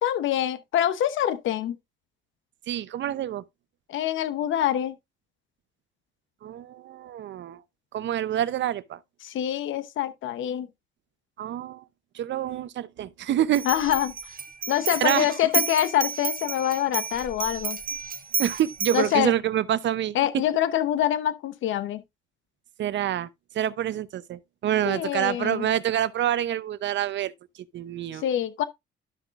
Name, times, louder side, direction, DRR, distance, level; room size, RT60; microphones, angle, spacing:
voice 1, 0.0-1.8 3.9-5.0 9.2-10.7 13.6-14.1 14.7-17.8 18.9-19.3 20.1-22.0 24.9-25.7 28.1-28.6, left 11 dB, 75° left, 0.9 m, -25 dB
voice 2, 2.7-3.4 6.4-7.6 7.9-9.0 11.4-11.8 12.1-13.6 15.0-15.3 18.4-20.4 22.8-23.3 23.5-27.3 27.7-28.2, right 11 dB, 65° right, 0.7 m, -27 dB
sound 1, 13.5-19.2, right 4 dB, 45° right, 1.1 m, -31 dB
12.5 x 6.0 x 2.5 m
cardioid pair, 90°, 20 cm